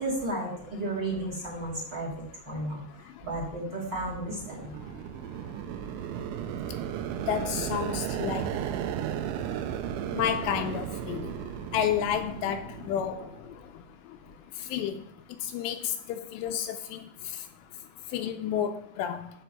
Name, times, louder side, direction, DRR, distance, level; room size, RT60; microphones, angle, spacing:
voice 1, 0.0-4.7, right 1 dB, 30° right, 2.3 m, -33 dB
sound 1, 3.7-13.5, right 9 dB, 85° right, 2.9 m, -35 dB
voice 2, 7.3-8.5 10.1-11.3 11.7-13.3 14.7-15.0 15.5-17.0 18.1-19.3, left 9 dB, 85° left, 2.7 m, -30 dB
10.0 x 4.5 x 6.8 m
omnidirectional pair, 5.1 m